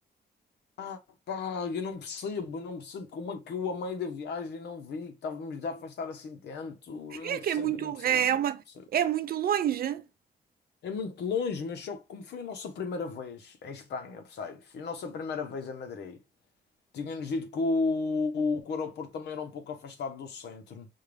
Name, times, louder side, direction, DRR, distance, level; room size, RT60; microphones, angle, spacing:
voice 1, 1.3-8.4 10.8-16.2 16.9-20.9, left 4 dB, 85° left, 0.9 m, -34 dB
voice 2, 7.2-8.6 8.9-10.0, right 10 dB, 60° right, 0.5 m, -27 dB
5.5 x 2.3 x 3.3 m
wide cardioid pair, 140°, 17 cm